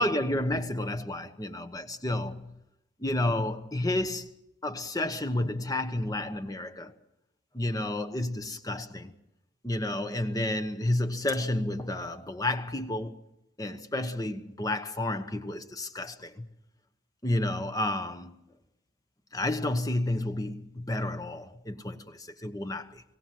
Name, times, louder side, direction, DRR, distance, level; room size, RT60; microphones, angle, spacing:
voice 1, 0.0-2.6 3.0-4.3 4.6-6.9 7.5-9.1 9.6-13.2 13.6-16.5 17.2-18.4 19.3-23.0, left 1 dB, 20° left, 1.1 m, -31 dB
25.5 x 17.0 x 7.6 m
head